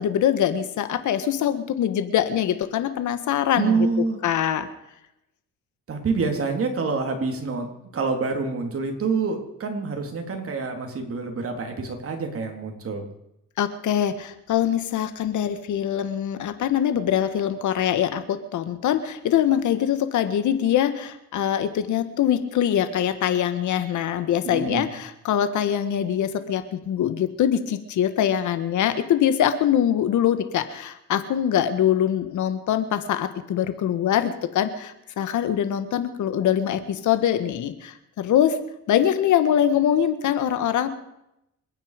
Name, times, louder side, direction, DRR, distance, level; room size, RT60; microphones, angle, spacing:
voice 1, 0.0-3.9 4.2-4.7 13.6-38.6 38.9-40.9, left 10 dB, 75° left, 11 dB, 1.5 m, -23 dB
voice 2, 3.5-4.2 5.9-7.7 7.9-13.1 24.4-24.9, right 4 dB, 50° right, 3 dB, 3.5 m, -26 dB
27.5 x 9.5 x 5.1 m, 0.83 s
cardioid pair, 90°, 30 cm